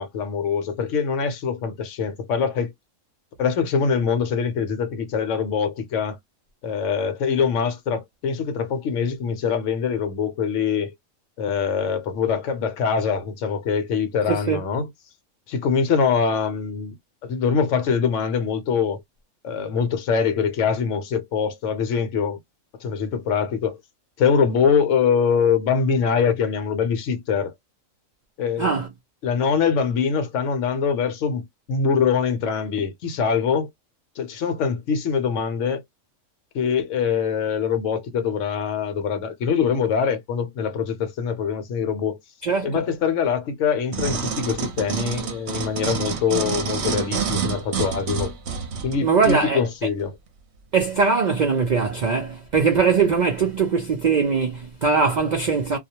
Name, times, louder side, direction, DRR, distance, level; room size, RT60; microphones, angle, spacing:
voice 1, 0.0-2.7 3.4-6.2 6.6-10.9 11.4-14.9 15.5-17.0 17.2-19.0 19.4-22.4 22.8-23.8 24.2-27.5 28.4-28.7 29.2-31.4 31.7-33.7 34.2-35.8 36.5-42.2 42.6-48.3 48.8-50.2, left 6 dB, 70° left, 1.0 m, -23 dB
voice 2, 14.3-14.6 28.6-28.9 42.4-42.8 49.0-49.6 50.7-55.8, right 5 dB, 80° right, 0.4 m, -21 dB
sound 1, 43.9-49.4 50.0-50.1, right 6 dB, 65° right, 0.8 m, -28 dB
2.4 x 2.0 x 2.8 m
omnidirectional pair, 1.4 m